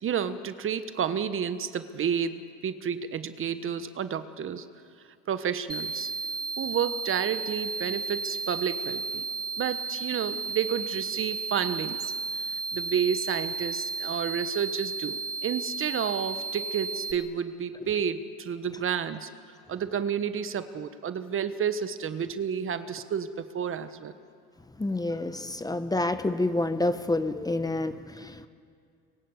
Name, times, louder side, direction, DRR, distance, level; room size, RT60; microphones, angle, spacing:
voice 1, 0.0-4.7 5.3-6.1 6.6-9.3 9.6-12.1 12.7-19.3 19.7-24.1, right 7 dB, 35° right, 11 dB, 1.3 m, -30 dB
sound 1, 5.7-17.1, right 4 dB, 10° right, 1.7 m, -33 dB
voice 2, 24.8-28.5, left 2 dB, 10° left, 10 dB, 1.2 m, -28 dB
25.0 x 22.0 x 8.2 m, 2.3 s
supercardioid pair, 90°, 34 cm